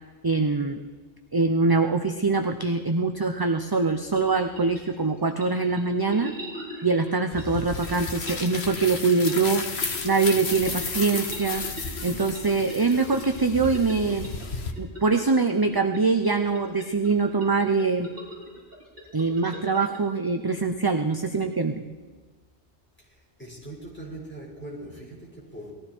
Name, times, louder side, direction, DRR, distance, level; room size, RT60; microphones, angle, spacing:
voice 1, 0.2-0.8 1.3-6.3 6.8-9.6 10.0-11.6 12.0-14.3 14.8-18.1 19.1-21.8, right 4 dB, 25° right, 7 dB, 0.6 m, -23 dB
sound 1, 3.7-20.0, equal, 60° right, 5.2 m, -42 dB
sound 2, 7.3-14.7, left 4 dB, 70° left, 1.5 m, -33 dB
voice 2, 23.4-25.7, right 1 dB, 10° left, -4 dB, 5.0 m, -40 dB
19.5 x 14.5 x 4.5 m, 1.4 s
omnidirectional pair, 1.1 m